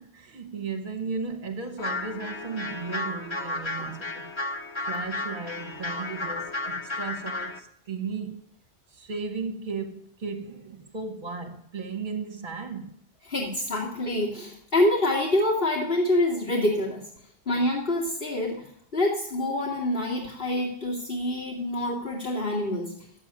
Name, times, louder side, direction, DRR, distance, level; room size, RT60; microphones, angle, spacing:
voice 1, 0.0-4.3 4.8-8.4 8.9-13.0, right 4 dB, 50° right, 1.3 m, -35 dB
sound 1, 1.8-7.6, left 2 dB, 25° left, 1.1 m, -33 dB
voice 2, 13.3-17.0 17.5-23.0, left 1 dB, 55° left, 2.6 m, -26 dB
13.0 x 8.2 x 8.8 m
omnidirectional pair, 1.1 m